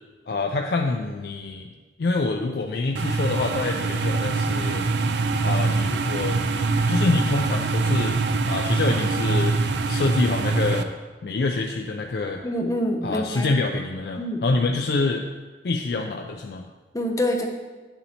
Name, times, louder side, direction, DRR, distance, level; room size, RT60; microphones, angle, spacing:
voice 1, 0.3-1.7 2.0-4.8 5.4-6.4 6.9-8.2 8.5-9.6 9.9-10.9 11.2-12.4 13.0-15.2 15.6-16.6, left 3 dB, 60° left, 2 dB, 0.4 m, -26 dB
sound 1, 3.0-10.8, right 3 dB, 80° right, 0.4 m, -24 dB
voice 2, 12.4-13.5 14.2-14.4 16.9-17.5, left 1 dB, 20° left, 2 dB, 0.6 m, -26 dB
8.8 x 7.0 x 2.9 m, 1.3 s
head